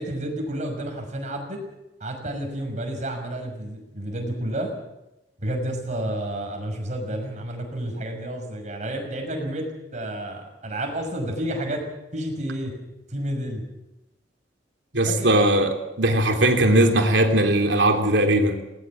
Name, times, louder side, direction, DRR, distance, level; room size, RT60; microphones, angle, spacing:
voice 1, 0.0-1.7 2.0-4.7 5.4-11.9 12.1-12.8 13.1-13.6 15.1-15.3, right 1 dB, 40° right, 3 dB, 5.8 m, -30 dB
voice 2, 14.9-18.6, right 1 dB, 75° right, 4 dB, 3.1 m, -19 dB
20.0 x 19.0 x 7.3 m, 0.94 s
head